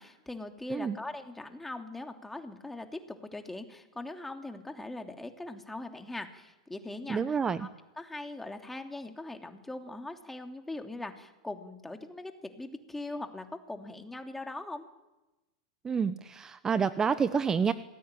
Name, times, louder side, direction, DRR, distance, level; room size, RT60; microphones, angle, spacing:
voice 1, 0.0-7.7 8.0-14.8, left 2 dB, 10° left, 5 dB, 3.0 m, -41 dB
voice 2, 7.1-7.6 15.8-17.7, right 6 dB, 20° right, 13 dB, 1.1 m, -28 dB
26.5 x 19.5 x 9.1 m, 1.1 s
hypercardioid pair, 95°, 3 cm